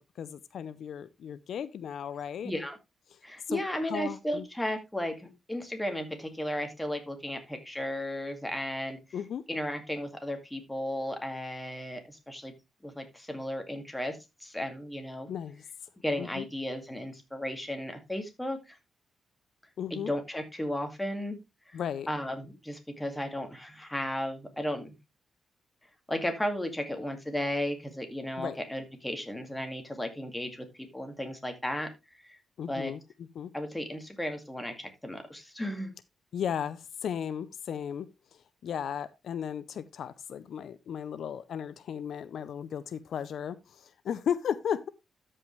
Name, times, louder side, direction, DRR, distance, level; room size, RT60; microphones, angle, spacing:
voice 1, 0.0-2.5 3.5-4.4 9.1-9.4 15.3-15.6 16.2-16.4 19.8-20.1 21.7-22.1 28.4-28.6 32.6-33.0 33.4-33.5 36.3-38.1 38.6-44.9, left 8 dB, 70° left, 0.5 m, -35 dB
voice 2, 2.4-2.8 3.2-9.0 9.5-12.5 12.8-15.3 16.0-18.8 19.9-21.4 21.7-21.8 22.1-25.0 26.1-31.9 32.2-32.4 32.7-32.9 33.5-35.9, left 1 dB, 5° left, 2.1 m, -34 dB
13.0 x 5.5 x 3.2 m
cardioid pair, 125°, 0 cm